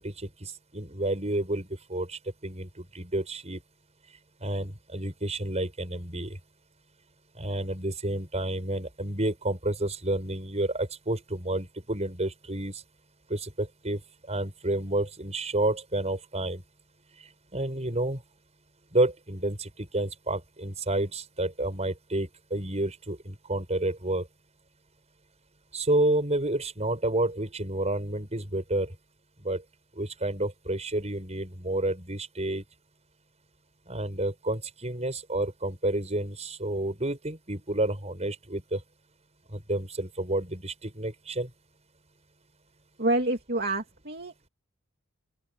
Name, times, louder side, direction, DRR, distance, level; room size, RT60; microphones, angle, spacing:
voice 1, 0.0-3.6 4.4-6.4 7.3-12.8 13.3-14.0 14.3-16.6 17.5-18.2 18.9-24.3 25.7-28.9 29.4-29.6 29.9-32.6 33.9-38.8 39.5-41.5, right 1 dB, 30° right, 6.7 m, -30 dB
voice 2, 43.0-44.5, right 2 dB, 45° right, 2.6 m, -28 dB
open air
head